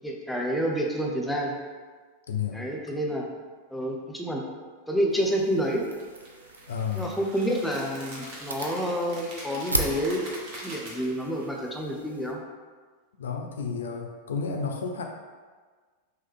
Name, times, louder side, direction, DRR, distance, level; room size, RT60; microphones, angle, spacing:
voice 1, 0.0-1.6 2.5-3.3 3.7-4.4 4.9-5.8 6.9-10.2 10.6-12.4, equal, 5° left, -1 dB, 0.6 m, -28 dB
voice 2, 2.3-2.6 6.7-7.1 13.2-15.0, left 6 dB, 65° left, 2 dB, 0.4 m, -31 dB
sound 1, 5.1-12.3, right 2 dB, 80° right, 0.4 m, -37 dB
sound 2, 6.0-11.4, right 1 dB, 40° right, 1.2 m, -43 dB
4.4 x 3.0 x 3.6 m, 1.5 s
figure-of-eight pair, 90°, 0 cm